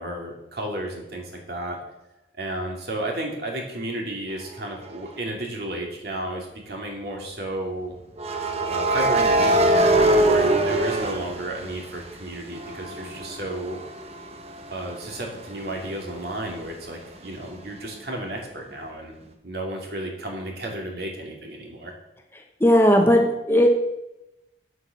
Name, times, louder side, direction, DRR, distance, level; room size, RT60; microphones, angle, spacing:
voice 1, 0.0-1.8 2.4-7.9 8.7-13.8 14.7-19.2 19.4-21.9, right 1 dB, 55° right, 1 dB, 2.5 m, -32 dB
sound 1, 4.9-5.1 8.2-12.1 12.5-16.0, right 1 dB, 35° right, 1.0 m, -23 dB
voice 2, 22.6-23.7, equal, 10° left, 2 dB, 1.1 m, -17 dB
8.0 x 8.0 x 7.0 m, 0.94 s
head